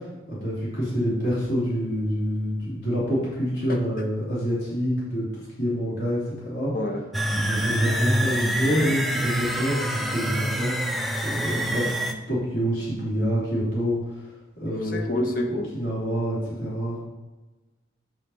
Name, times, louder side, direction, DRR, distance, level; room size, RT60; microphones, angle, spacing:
voice 1, 0.3-5.3 5.6-6.2 6.4-6.7 7.4-10.7 11.2-11.8 12.3-14.0 14.6-15.0 15.5-17.0, equal, 75° left, -7 dB, 2.7 m, -26 dB
voice 2, 6.7-7.0 14.8-15.7, left 1 dB, 45° left, 4 dB, 0.9 m, -28 dB
sound 1, 7.1-12.1, equal, ahead, 0.4 m, -26 dB
7.5 x 5.4 x 4.1 m, 1.1 s
head